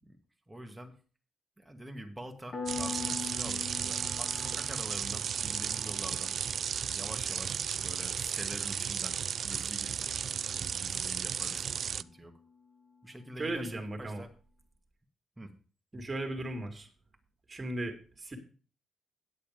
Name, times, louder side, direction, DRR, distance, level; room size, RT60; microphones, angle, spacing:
voice 1, 0.5-0.9 1.6-6.3 6.9-9.2 9.4-10.1 10.6-12.3 13.0-14.3 15.4-15.5, right 1 dB, 10° right, 4 dB, 2.0 m, -46 dB
Piano, 2.5-12.9, left 5 dB, 45° left, 2.8 m, -46 dB
sound 1, 2.7-12.0, right 7 dB, 55° right, 0.4 m, -34 dB
voice 2, 13.4-14.2 15.9-16.9 17.5-18.4, right 1 dB, 25° right, 4 dB, 2.8 m, -36 dB
9.3 x 8.4 x 5.1 m, 0.38 s
cardioid pair, 90°, 0 cm